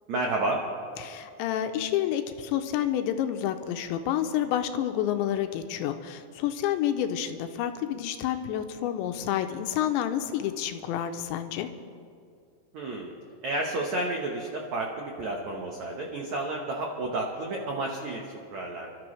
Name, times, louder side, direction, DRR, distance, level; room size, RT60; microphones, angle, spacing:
voice 1, 0.1-0.6 12.7-13.1 13.4-18.9, right 2 dB, 80° right, 0 dB, 1.6 m, -31 dB
voice 2, 1.0-11.7, left 10 dB, 85° left, 7 dB, 2.9 m, -29 dB
28.0 x 13.0 x 3.3 m, 2.3 s
omnidirectional pair, 5.3 m